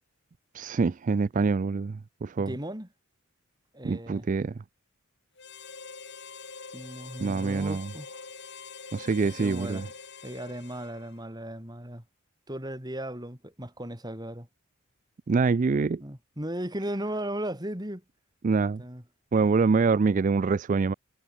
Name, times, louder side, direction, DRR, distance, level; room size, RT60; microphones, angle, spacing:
voice 1, 0.5-2.5 3.8-4.5 7.2-7.9 8.9-9.9 15.3-16.0 18.4-18.8 19.3-20.9, right 4 dB, 35° right, 0.3 m, -25 dB
voice 2, 2.4-2.9 3.7-4.3 6.7-8.2 9.2-9.9 10.2-12.0 12.5-14.5 16.0-18.0 18.8-19.0, right 1 dB, 20° right, 4.4 m, -36 dB
Harmonica, 5.4-11.3, left 5 dB, 50° left, 5.2 m, -45 dB
head